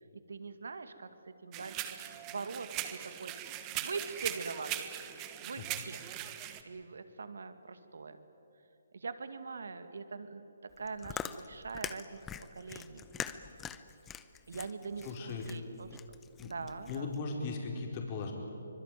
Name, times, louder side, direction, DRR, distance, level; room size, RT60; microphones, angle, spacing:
voice 1, 0.3-1.9 2.3-3.3 3.7-4.9 5.4-6.0 6.6-8.2 8.9-10.5 10.8-12.2 12.6-13.0 14.5-15.9 16.4-17.1, right 4 dB, 70° right, 10 dB, 2.1 m, -42 dB
sound 1, 1.5-6.6, right 13 dB, 25° right, 1.4 m, -40 dB
Chewing mastication, 10.7-17.2, left 8 dB, 15° left, 0.8 m, -44 dB
voice 2, 15.0-15.5 16.4-16.5 16.9-18.3, left 4 dB, 35° left, 1 dB, 4.8 m, -37 dB
24.5 x 23.0 x 9.3 m, 2.8 s
hypercardioid pair, 145°, 0 cm